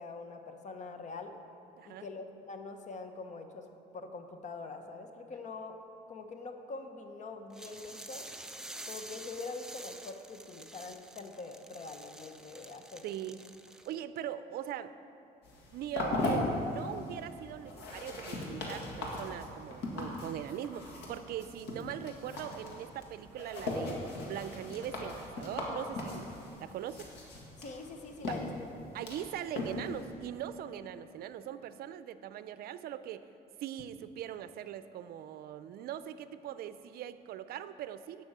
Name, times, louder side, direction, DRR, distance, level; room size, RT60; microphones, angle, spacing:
voice 1, 0.0-1.3 1.8-3.7 3.9-5.8 6.1-8.3 8.9-13.1 27.6-28.5, left 3 dB, 45° left, 6 dB, 1.0 m, -44 dB
sound 1, 7.5-14.0, right 1 dB, 5° right, 0.5 m, -48 dB
voice 2, 13.0-13.4 13.8-14.9 15.7-26.3 26.6-27.1 28.2-28.3 28.9-33.3 33.6-38.2, right 10 dB, 65° right, 13 dB, 0.5 m, -41 dB
sound 2, 15.4-30.1, left 2 dB, 85° left, 1.9 m, -38 dB
10.0 x 6.1 x 7.4 m, 2.8 s
cardioid pair, 110°, 17 cm